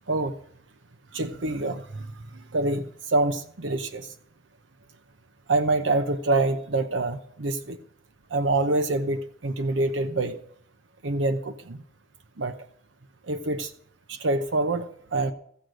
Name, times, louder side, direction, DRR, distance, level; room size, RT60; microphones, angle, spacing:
voice 1, 1.1-2.1 2.5-4.1 5.5-7.8 8.3-10.4 11.0-11.8 12.4-12.5 13.3-13.7 14.1-15.3, right 2 dB, 70° right, 8 dB, 0.8 m, -26 dB
15.0 x 7.8 x 6.5 m, 0.69 s
head